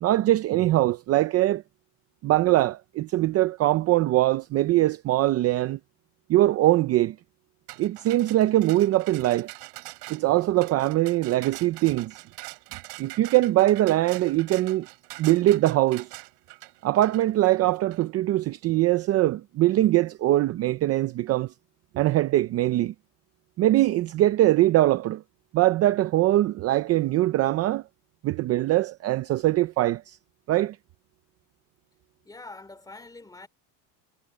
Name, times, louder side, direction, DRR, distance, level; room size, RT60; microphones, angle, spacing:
voice 1, 0.0-1.6 2.2-5.8 6.3-7.2 7.8-9.5 10.1-12.2 13.0-14.9 15.2-16.1 16.8-21.5 21.9-22.9 23.6-25.2 25.5-27.8 28.2-30.2 30.5-30.8, right 15 dB, 35° right, 0.5 m, -22 dB
sound 1, 7.7-18.1, right 26 dB, 70° right, 6.0 m, -43 dB
voice 2, 32.2-33.5, left 3 dB, 10° left, 3.0 m, -44 dB
cardioid pair, 155°, 43 cm